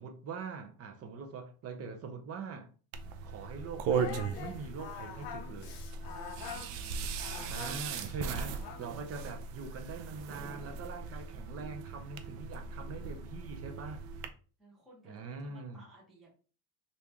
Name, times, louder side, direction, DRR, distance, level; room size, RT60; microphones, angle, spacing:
voice 1, 0.0-2.7 3.2-5.7 7.3-14.0 15.0-15.8, right 4 dB, 30° right, 0.6 m, -43 dB
sound 1, 2.9-14.3, right 6 dB, 70° right, 0.6 m, -38 dB
voice 2, 3.0-3.3 6.2-8.1 13.4-14.0 14.6-16.3, right 1 dB, ahead, 1.0 m, -61 dB
Singing, 3.9-9.0, left 8 dB, 55° left, 0.6 m, -45 dB
3.0 x 2.7 x 3.4 m
cardioid pair, 140°, 49 cm